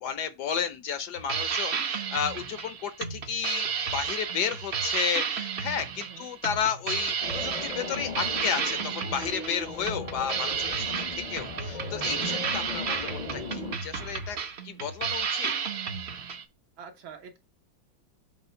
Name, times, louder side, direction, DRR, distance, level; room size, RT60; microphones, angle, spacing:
voice 1, 0.0-10.9 11.3-14.4 14.6-15.5, left 7 dB, 65° left, 1.1 m, -32 dB
sound 1, 1.2-16.4, right 6 dB, 50° right, 0.8 m, -32 dB
voice 2, 6.0-6.3 16.8-17.4, right 6 dB, 80° right, 2.1 m, -45 dB
sound 2, 7.2-13.8, left 4 dB, 40° left, 0.5 m, -38 dB
6.9 x 3.2 x 5.7 m
omnidirectional pair, 2.1 m